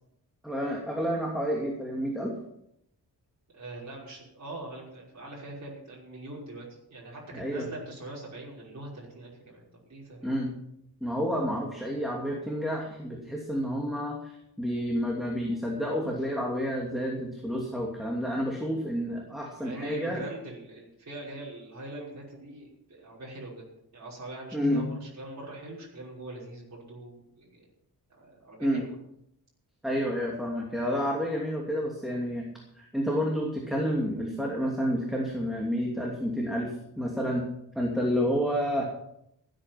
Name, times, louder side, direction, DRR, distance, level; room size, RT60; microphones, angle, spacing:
voice 1, 0.4-2.3 7.3-7.7 10.2-10.5 11.0-20.2 24.5-25.0 28.6-28.8 29.8-32.4 32.7-37.5 37.7-38.8, equal, ahead, -1 dB, 2.8 m, -30 dB
voice 2, 3.5-10.4 19.6-23.6 23.9-27.6 28.2-28.9, right 2 dB, 45° right, -5 dB, 5.7 m, -43 dB
16.5 x 9.0 x 6.1 m, 0.77 s
wide cardioid pair, 115°, 38 cm